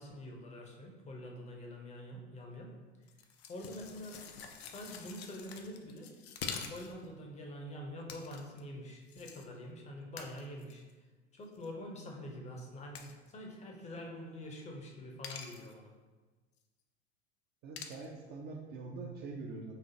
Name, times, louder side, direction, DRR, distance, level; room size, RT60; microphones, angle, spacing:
voice 1, 0.0-2.7 3.5-4.2 4.6-6.1 6.7-10.8 11.3-15.9, left 1 dB, 20° left, 1 dB, 0.6 m, -46 dB
sound 1, 3.1-7.1 8.1-8.6 9.1-9.5 10.2-10.9 11.5-11.7 12.9-13.3 15.2-15.7 17.8-18.1, left 6 dB, 70° left, 0.5 m, -46 dB
voice 2, 17.6-19.7, right 3 dB, 30° right, 0 dB, 0.4 m, -44 dB
4.1 x 2.4 x 2.7 m, 1.3 s
figure-of-eight pair, 75°, 33 cm